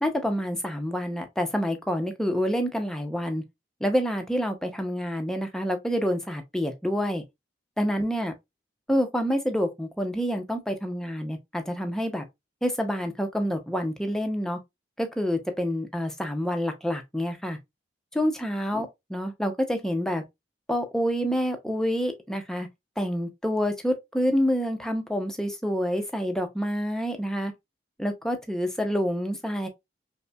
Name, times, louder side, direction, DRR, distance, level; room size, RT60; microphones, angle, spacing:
voice 1, 0.0-3.4 3.8-7.2 7.8-8.3 8.9-12.2 12.6-14.6 15.0-17.6 18.1-20.2 20.7-22.7 23.0-27.5 28.0-29.7, equal, 5° left, 0.5 m, -27 dB
5.2 x 2.1 x 2.2 m
head